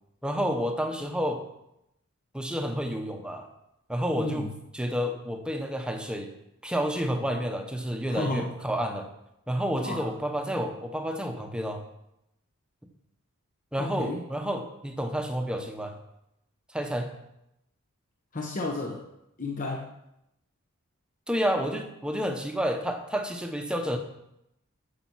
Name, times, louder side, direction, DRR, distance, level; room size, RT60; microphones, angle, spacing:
voice 1, 0.2-1.4 2.3-3.5 3.9-6.3 6.6-9.1 9.5-11.8 13.7-16.0 16.7-17.1 21.3-24.0, equal, 5° right, 5 dB, 1.0 m, -30 dB
voice 2, 4.1-4.5 8.1-8.5 9.8-10.1 13.8-14.2 18.3-19.0 19.4-19.9, left 2 dB, 40° left, 0 dB, 1.0 m, -32 dB
9.8 x 6.9 x 6.2 m, 0.84 s
head